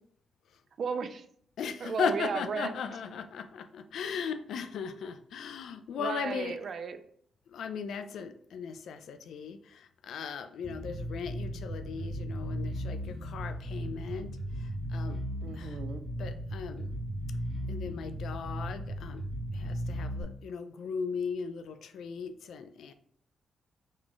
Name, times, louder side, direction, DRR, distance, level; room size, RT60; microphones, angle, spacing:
voice 1, 0.8-1.3 1.8-2.7 5.9-7.0 15.4-16.0, right 5 dB, 60° right, 9 dB, 0.3 m, -34 dB
voice 2, 1.6-6.6 7.5-15.2 15.5-15.8 16.2-16.9 17.7-19.2 19.5-22.9, left 6 dB, 75° left, 9 dB, 0.3 m, -37 dB
Bass guitar, 10.6-20.2, equal, 40° right, 1.2 m, -36 dB
3.1 x 2.4 x 3.7 m, 0.64 s
supercardioid pair, 50°, 0 cm